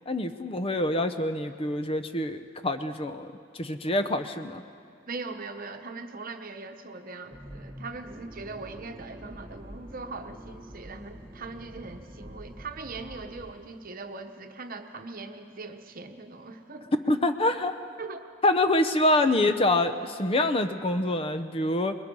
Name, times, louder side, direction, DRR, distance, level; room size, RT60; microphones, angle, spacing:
voice 1, 0.1-3.3 3.5-4.6 17.1-17.8 18.4-22.0, left 1 dB, 30° left, 9 dB, 0.7 m, -26 dB
voice 2, 5.1-16.9 18.0-18.3, right 3 dB, 45° right, 6 dB, 1.1 m, -40 dB
Accelerating revving vroom, 7.3-13.5, equal, 15° right, 1.1 m, -46 dB
25.0 x 21.5 x 5.4 m, 2.3 s
head